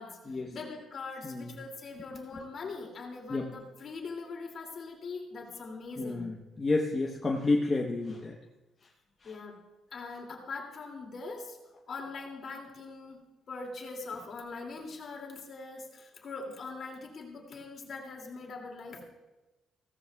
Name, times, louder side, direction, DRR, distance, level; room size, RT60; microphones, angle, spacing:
voice 1, 0.0-6.3 9.2-9.6 9.9-11.6 11.9-13.2 13.5-19.0, left 3 dB, 50° left, 1 dB, 2.6 m, -42 dB
voice 2, 6.0-8.4, left 3 dB, 25° left, -1 dB, 1.1 m, -30 dB
16.0 x 14.0 x 2.4 m, 1.1 s
cardioid pair, 110°, 0 cm